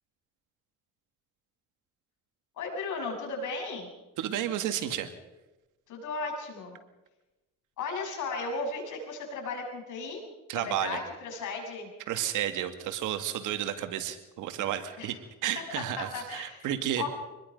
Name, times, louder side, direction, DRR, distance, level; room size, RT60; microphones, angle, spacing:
voice 1, 2.6-3.9 5.9-6.8 7.8-10.2 10.5-11.9 15.0-15.1 15.8-16.7 17.0-17.1, left 4 dB, 80° left, 1 dB, 7.4 m, -35 dB
voice 2, 4.2-5.1 10.5-11.0 12.1-15.2 15.4-17.0, right 11 dB, 90° right, 8 dB, 2.1 m, -32 dB
26.0 x 20.5 x 5.4 m, 1.1 s
cardioid pair, 90°, 30 cm